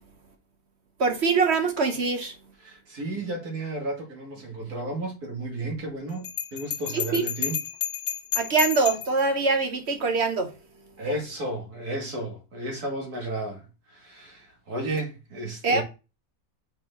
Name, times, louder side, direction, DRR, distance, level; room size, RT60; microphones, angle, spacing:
voice 1, 1.0-2.3 6.9-7.2 8.3-10.6 15.6-15.8, right 4 dB, 50° right, 1.1 m, -23 dB
voice 2, 2.6-7.6 11.0-15.8, right 1 dB, 80° right, 2.5 m, -33 dB
Bell, 6.2-9.2, left 10 dB, 55° left, 1.1 m, -31 dB
6.1 x 4.8 x 3.6 m
omnidirectional pair, 1.6 m